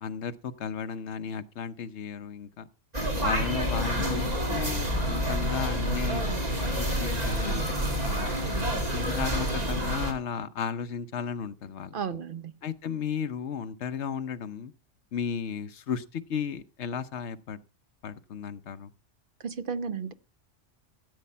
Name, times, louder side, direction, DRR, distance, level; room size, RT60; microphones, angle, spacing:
voice 1, 0.0-2.7 3.2-6.2 6.8-7.6 8.0-8.5 8.9-11.9 12.6-14.7 15.1-17.6 18.0-18.9, left 7 dB, 65° left, 1.1 m, -34 dB
sound 1, 2.9-10.1, equal, 30° right, 2.4 m, -28 dB
voice 2, 11.9-12.5 19.4-20.1, right 6 dB, 50° right, 0.9 m, -33 dB
14.0 x 8.5 x 5.5 m
omnidirectional pair, 1.3 m